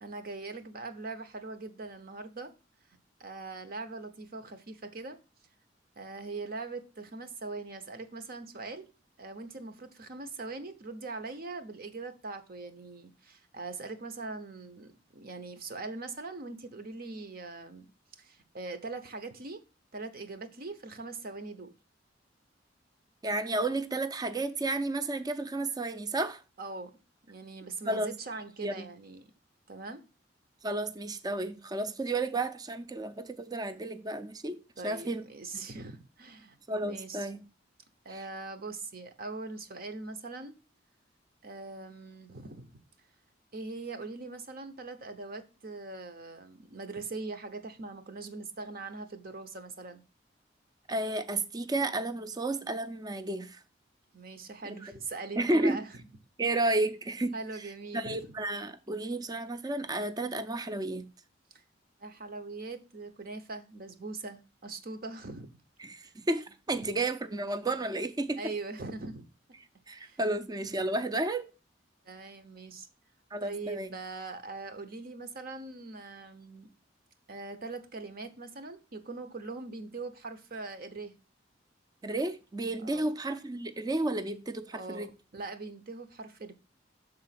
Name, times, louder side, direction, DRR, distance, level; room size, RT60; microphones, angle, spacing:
voice 1, 0.0-2.5 3.2-5.2 6.0-8.9 9.2-17.9 18.2-19.6 19.9-21.7 26.6-26.9 27.3-29.3 29.7-30.0 34.8-37.3 38.0-40.5 41.4-42.8 43.5-50.0 54.1-55.9 57.3-58.3 61.5-61.6 62.0-65.5 66.0-66.1 66.8-66.9 68.4-69.2 70.0-70.2 72.0-72.9 73.4-76.7 77.3-81.1 82.8-83.1 84.7-86.5, right 3 dB, 55° right, 0.9 m, -41 dB
voice 2, 23.2-26.4 27.8-28.1 28.6-28.9 30.6-35.2 36.7-37.4 38.1-38.2 50.9-53.6 54.7-54.9 55.4-55.8 56.4-57.3 57.9-61.1 65.8-68.4 69.9-71.5 73.3-73.9 82.0-85.1, right 2 dB, 20° right, 0.5 m, -32 dB
6.7 x 3.9 x 5.7 m
head